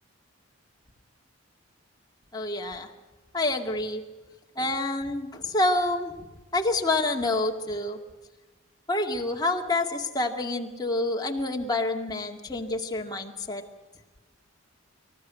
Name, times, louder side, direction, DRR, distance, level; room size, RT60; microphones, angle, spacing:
voice 1, 2.3-2.9 3.3-4.0 4.6-6.1 6.5-8.0 8.9-13.6, left 2 dB, 20° left, 2 dB, 2.1 m, -27 dB
26.0 x 14.5 x 9.3 m, 1.1 s
head